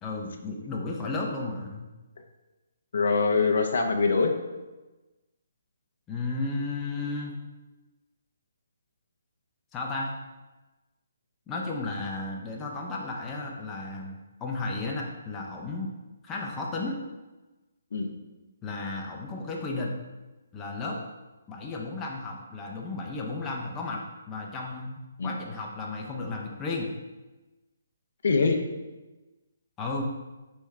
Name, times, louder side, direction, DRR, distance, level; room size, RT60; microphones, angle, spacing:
voice 1, 0.0-1.9 6.1-7.3 9.7-10.1 11.5-15.9 16.2-17.0 18.6-19.9 20.5-21.0 21.5-24.0 24.3-26.9 29.8-30.0, left 3 dB, 15° left, -2 dB, 0.5 m, -33 dB
voice 2, 2.9-4.3 17.9-18.1 25.2-25.3 28.2-28.6, left 4 dB, 65° left, 4 dB, 0.5 m, -23 dB
4.5 x 3.5 x 3.2 m, 1.1 s
hypercardioid pair, 155°, 0 cm